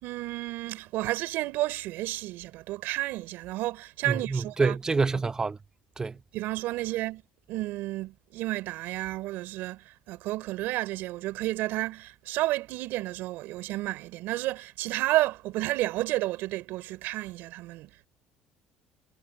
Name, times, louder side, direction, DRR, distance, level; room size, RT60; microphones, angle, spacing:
voice 1, 0.0-4.8 6.3-7.2 7.5-18.1, right 17 dB, 75° right, 4.8 m, -31 dB
voice 2, 4.1-5.6 6.0-6.1, right 4 dB, 20° right, 1.1 m, -27 dB
cardioid pair, 110°, 3 cm